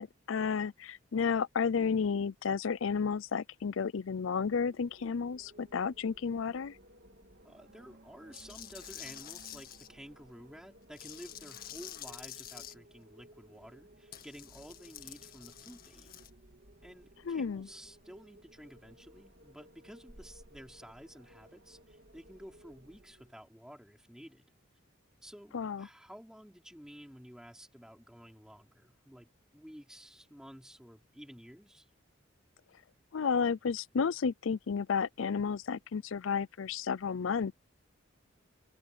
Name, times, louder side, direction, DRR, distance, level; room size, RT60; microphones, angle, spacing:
voice 1, 0.0-6.8 17.3-17.7 25.5-25.9 33.1-37.5, left 6 dB, 80° left, 0.5 m, -32 dB
Wind, 4.4-23.4, right 1 dB, 55° right, 2.5 m, -59 dB
voice 2, 7.4-16.2 16.8-24.5 25.2-31.9, equal, 5° right, 4.1 m, -52 dB
sound 1, 8.3-9.9 10.9-12.7 14.1-16.3, left 11 dB, 45° left, 2.0 m, -48 dB
head